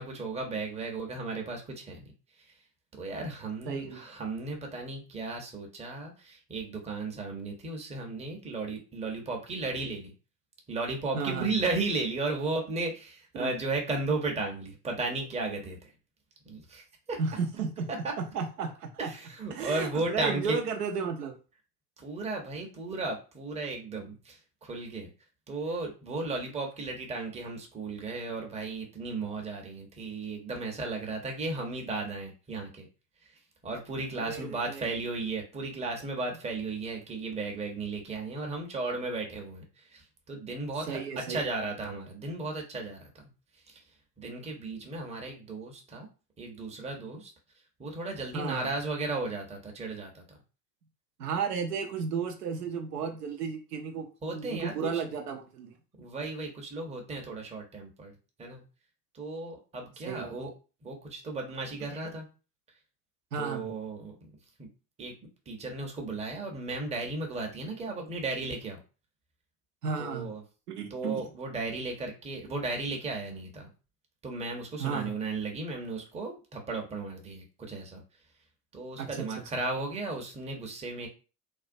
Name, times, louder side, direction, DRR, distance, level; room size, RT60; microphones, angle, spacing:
voice 1, 0.0-2.0 2.5-2.6 3.0-10.1 10.7-15.9 16.4-17.2 19.0-20.6 22.0-25.1 25.5-32.9 33.2-33.3 33.6-43.1 43.7-43.8 44.2-46.1 46.4-47.3 47.8-50.4 54.2-55.0 56.0-58.1 58.4-58.6 59.1-60.5 60.8-62.3 63.4-64.3 64.6-64.7 65.0-65.1 65.5-68.8 70.0-70.4 70.9-73.7 74.2-78.0 78.7-81.1, right 3 dB, 15° right, 1 dB, 0.6 m, -35 dB
voice 2, 3.7-4.0 11.1-11.5 13.3-13.5 17.2-17.9 18.2-19.1 19.5-21.4 34.1-34.8 40.9-41.4 48.3-48.7 51.2-55.7 60.1-60.3 63.3-63.7 69.8-70.3 70.7-71.2 74.8-75.1 79.0-79.3, right 5 dB, 85° right, 4 dB, 0.6 m, -33 dB
2.4 x 2.1 x 2.5 m, 0.34 s
figure-of-eight pair, 70°, 46 cm